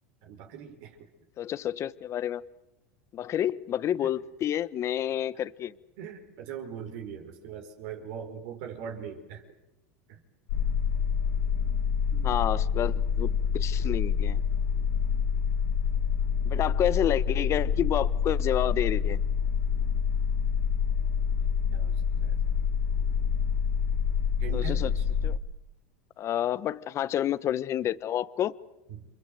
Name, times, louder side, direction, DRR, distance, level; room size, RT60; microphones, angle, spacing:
voice 1, 0.2-1.1 4.0-4.1 6.0-9.4 10.1-10.2 12.1-12.6 21.7-22.4 24.4-25.0 28.9-29.1, right 7 dB, 65° right, 5.0 m, -41 dB
voice 2, 1.4-2.4 3.1-5.7 12.2-14.4 16.5-19.2 24.5-24.9 25.2-25.4 26.2-28.5, left 11 dB, 40° left, 1.2 m, -29 dB
sound 1, 10.5-25.4, left 7 dB, 70° left, 3.0 m, -27 dB
29.0 x 26.0 x 7.9 m
hypercardioid pair, 105°, 8 cm